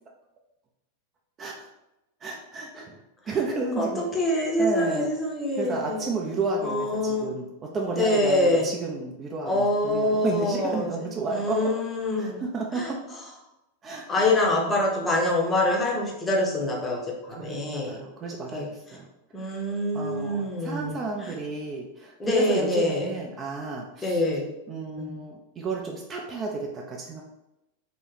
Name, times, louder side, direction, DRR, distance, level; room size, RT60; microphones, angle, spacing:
voice 1, 2.2-3.0 3.2-4.0 4.6-5.1 5.6-11.6 12.2-12.9 13.8-14.2 14.5-14.7 17.3-19.1 19.4-19.6 19.9-24.2 24.7-27.2, right 3 dB, 25° right, 0 dB, 0.4 m, -32 dB
voice 2, 3.8-6.1 6.6-7.3 8.0-8.7 9.5-10.9 11.3-12.4 12.7-12.9 14.1-18.0 18.5-18.7 19.3-21.3 22.2-23.1 24.0-24.5 25.0-25.2, left 1 dB, 15° left, -1 dB, 0.8 m, -25 dB
2.9 x 2.3 x 3.9 m, 0.93 s
figure-of-eight pair, 90°, 0 cm